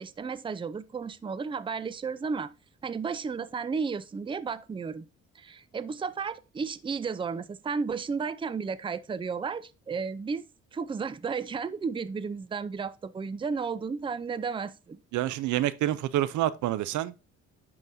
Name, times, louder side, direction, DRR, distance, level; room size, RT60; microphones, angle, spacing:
voice 1, 0.0-2.5 2.8-5.1 5.4-10.4 10.7-15.0, right 5 dB, 15° right, 0.4 m, -33 dB
voice 2, 15.1-17.1, right 13 dB, 75° right, 0.5 m, -27 dB
10.5 x 3.8 x 2.6 m
cardioid pair, 90°, 30 cm